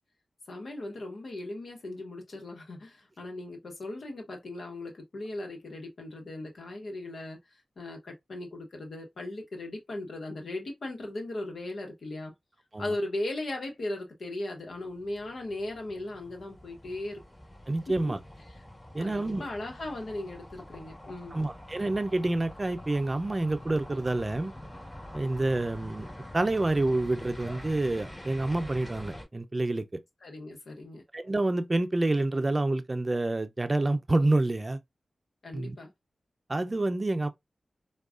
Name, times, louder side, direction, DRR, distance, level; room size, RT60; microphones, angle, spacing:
voice 1, 0.5-7.4 7.8-12.3 12.8-17.2 19.0-21.4 30.2-31.0 35.4-35.9, left 2 dB, 75° left, 1.1 m, -38 dB
sound 1, 14.7-29.2, left 1 dB, 20° left, 2.3 m, -46 dB
voice 2, 17.7-18.2 18.9-19.5 21.3-24.5 25.1-26.1 26.3-30.0 31.1-34.8 35.5-35.8 36.5-37.3, right 2 dB, 35° right, 0.5 m, -28 dB
4.6 x 2.3 x 2.4 m
cardioid pair, 45°, 0 cm